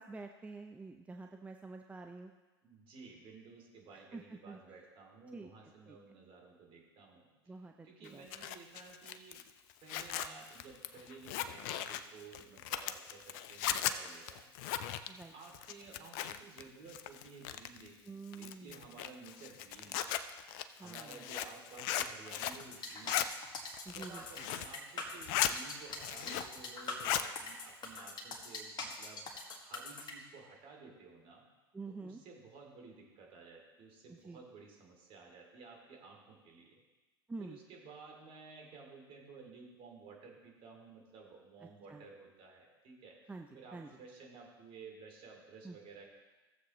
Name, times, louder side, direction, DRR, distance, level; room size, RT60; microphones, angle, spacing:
voice 1, 0.0-2.3 3.9-4.6 5.3-6.0 7.5-8.5 15.1-15.3 18.1-19.0 20.8-21.3 23.9-24.5 31.7-32.2 34.1-34.4 37.3-37.6 41.6-42.0 43.3-43.9 45.6-45.8, right 3 dB, 10° right, 4 dB, 0.6 m, -48 dB
voice 2, 2.6-7.3 7.8-9.4 9.8-14.5 15.3-20.1 20.8-23.3 23.9-31.5 32.0-36.8 37.4-43.2 43.5-46.1, right 4 dB, 45° right, 0 dB, 2.7 m, -54 dB
Zipper (clothing), 8.1-16.6 16.9-17.9 18.3-22.6 22.9-23.3 23.7-24.7 25.1-25.5 25.9-26.6 26.9-27.3, left 11 dB, 55° left, 0.6 m, -37 dB
sound 1, 22.6-30.1, left 3 dB, 35° left, 1.8 m, -43 dB
15.0 x 7.5 x 3.1 m, 1.2 s
hypercardioid pair, 85°, 13 cm